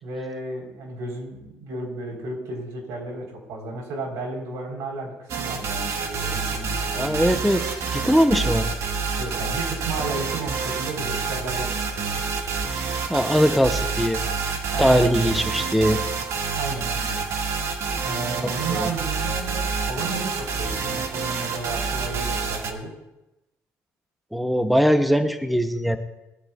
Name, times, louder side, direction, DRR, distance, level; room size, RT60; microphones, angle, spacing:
voice 1, 0.0-7.2 9.2-12.2 14.7-15.1 15.4-15.6 16.6-17.2 18.0-22.9, right 2 dB, 85° right, 1 dB, 3.9 m, -33 dB
sound 1, 5.3-22.7, right 5 dB, 60° right, 1.5 m, -28 dB
voice 2, 6.9-7.6 7.9-8.7 12.7-14.2 14.8-16.0 18.7-18.9 24.3-26.0, equal, ahead, 7 dB, 0.7 m, -21 dB
20.5 x 12.5 x 2.4 m, 0.96 s
cardioid pair, 130°, 6 cm